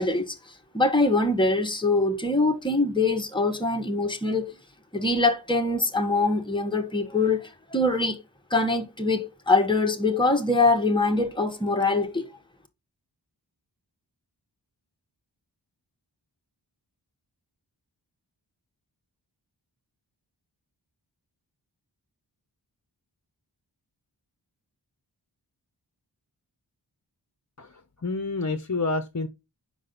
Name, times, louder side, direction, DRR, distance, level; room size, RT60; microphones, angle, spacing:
voice 1, 0.0-4.5 4.9-8.2 8.5-12.3, left 2 dB, 10° left, 1.3 m, -24 dB
voice 2, 27.6-29.3, left 3 dB, 40° left, 0.8 m, -29 dB
6.1 x 4.9 x 3.9 m
wide cardioid pair, 45°, 44 cm